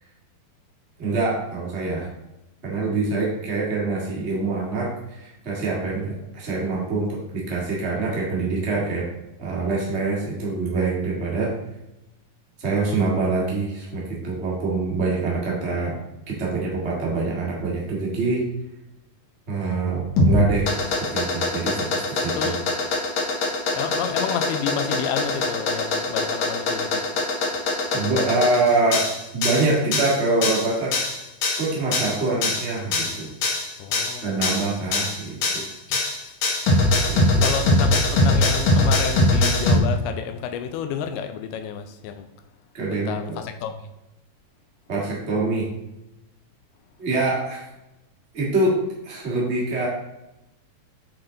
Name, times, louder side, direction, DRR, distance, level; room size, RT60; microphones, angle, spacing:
voice 1, 1.0-2.1 2.6-9.1 9.4-11.5 12.6-16.0 16.3-18.4 19.5-20.7 21.0-22.5 27.9-31.0 31.6-33.3 34.2-35.6 36.7-37.5 42.7-43.4 44.9-45.7 47.0-47.7 48.3-49.9, right 3 dB, 50° right, -4 dB, 0.7 m, -25 dB
sound 1, 20.2-39.8, left 2 dB, 65° left, 1.8 m, -22 dB
voice 2, 23.7-27.1 33.8-34.6 35.9-36.4 37.4-42.3 42.9-43.9, left 8 dB, 85° left, 8 dB, 2.5 m, -30 dB
7.8 x 3.9 x 3.8 m, 0.93 s
omnidirectional pair, 4.4 m